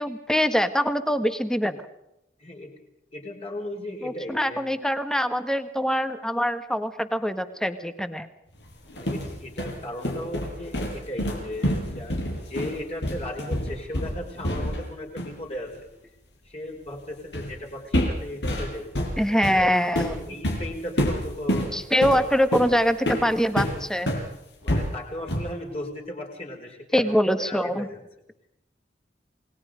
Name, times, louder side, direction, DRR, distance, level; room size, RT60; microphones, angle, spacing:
voice 1, 0.0-1.8 4.0-8.3 19.2-20.3 21.7-24.2 26.9-27.9, equal, 5° left, 10 dB, 1.5 m, -24 dB
voice 2, 2.4-2.7 3.1-4.6 8.9-15.7 16.4-18.9 19.3-19.7 20.3-22.2 24.6-28.0, left 1 dB, 35° left, 0 dB, 5.2 m, -36 dB
sound 1, 8.7-14.9 15.2-15.4 17.3-17.6 17.9-24.3 24.7-25.6, equal, 80° left, 6.4 m, -28 dB
29.0 x 20.0 x 5.2 m, 0.82 s
head